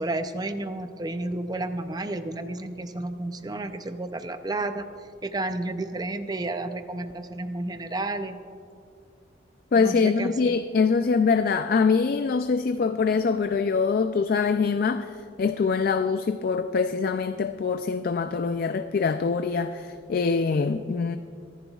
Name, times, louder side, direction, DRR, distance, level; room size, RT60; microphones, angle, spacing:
voice 1, 0.0-4.9 5.2-8.4 9.8-10.3, right 2 dB, 20° right, 9 dB, 0.5 m, -31 dB
voice 2, 9.7-21.2, left 5 dB, 45° left, 9 dB, 0.3 m, -24 dB
24.0 x 10.5 x 2.4 m, 2.3 s
head